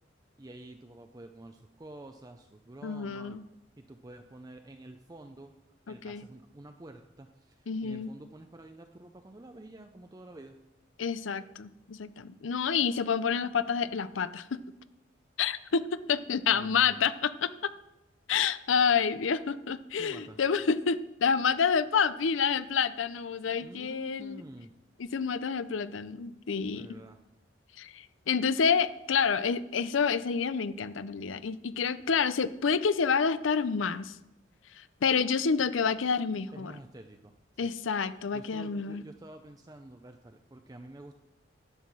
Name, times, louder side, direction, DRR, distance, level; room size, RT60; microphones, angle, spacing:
voice 1, 0.4-3.4 3.8-5.5 5.9-10.6 16.5-17.1 20.0-20.4 23.6-24.7 26.7-27.2 36.5-37.4 37.6-37.7 38.3-41.2, right 1 dB, 20° right, 5 dB, 0.5 m, -49 dB
voice 2, 2.8-3.4 5.9-6.2 7.7-8.1 11.0-14.6 15.4-17.5 18.3-24.4 25.0-27.0 27.8-34.2 34.7-36.7 37.6-39.0, left 6 dB, 80° left, 15 dB, 0.5 m, -28 dB
11.5 x 7.3 x 6.2 m, 0.93 s
head